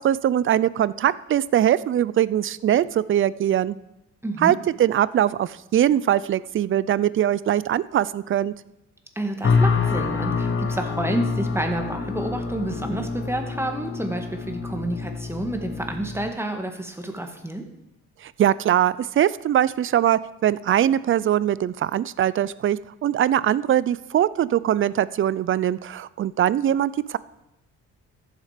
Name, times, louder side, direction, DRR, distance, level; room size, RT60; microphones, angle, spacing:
voice 1, 0.0-3.8 4.4-8.5 18.2-27.2, right 11 dB, 45° right, 19 dB, 0.5 m, -22 dB
voice 2, 4.2-4.5 9.2-17.6, right 1 dB, 10° right, 4 dB, 1.8 m, -29 dB
sound 1, 9.4-16.3, left 5 dB, 40° left, 1.5 m, -26 dB
14.0 x 7.4 x 5.1 m, 0.91 s
cardioid pair, 90°, 30 cm